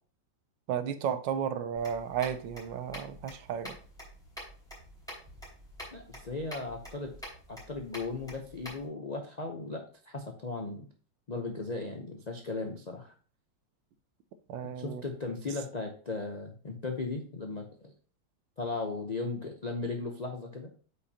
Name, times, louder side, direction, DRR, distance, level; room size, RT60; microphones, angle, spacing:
voice 1, 0.7-3.8 14.5-15.0, right 8 dB, 80° right, 1.3 m, -33 dB
sound 1, 1.8-8.9, equal, ahead, 3.5 m, -47 dB
voice 2, 5.9-7.1 7.5-10.9 11.3-13.1 14.8-17.9 18.6-20.7, left 3 dB, 75° left, 0.3 m, -37 dB
8.4 x 5.3 x 2.8 m
omnidirectional pair, 2.0 m